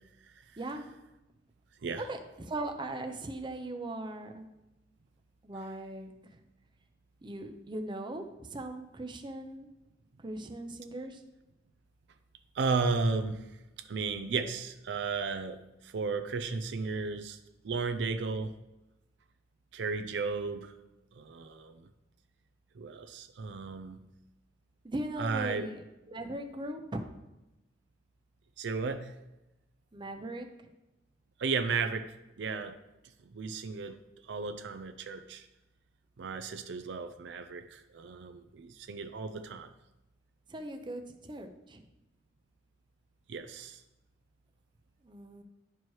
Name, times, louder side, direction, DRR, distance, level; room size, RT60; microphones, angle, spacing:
voice 1, 0.2-0.6 1.8-2.0 12.5-13.5 13.9-17.4 17.6-18.5 19.7-20.7 21.1-21.9 22.8-24.0 25.2-25.7 28.6-29.1 31.4-32.1 32.4-32.8 33.2-34.0 34.2-35.5 36.2-39.7 43.3-43.8, right 4 dB, 70° right, 9 dB, 0.5 m, -34 dB
voice 2, 2.0-4.5 5.4-6.4 7.2-9.7 10.2-11.2 24.8-27.0 29.9-30.5 40.5-41.8 45.0-45.4, right 1 dB, 25° right, 5 dB, 0.6 m, -39 dB
10.5 x 4.5 x 3.1 m, 0.97 s
head